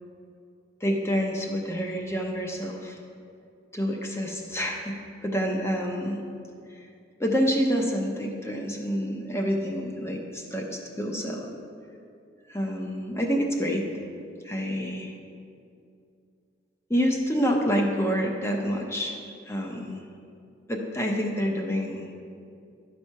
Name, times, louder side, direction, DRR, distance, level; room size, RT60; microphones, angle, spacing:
voice 1, 0.8-3.0 3.7-4.9 5.2-6.2 6.8-6.9 7.2-11.5 12.5-13.9 14.4-15.1 16.9-19.2 19.5-20.0 20.7-22.0, equal, 15° left, 1 dB, 0.7 m, -27 dB
11.5 x 4.3 x 4.6 m, 2.5 s
head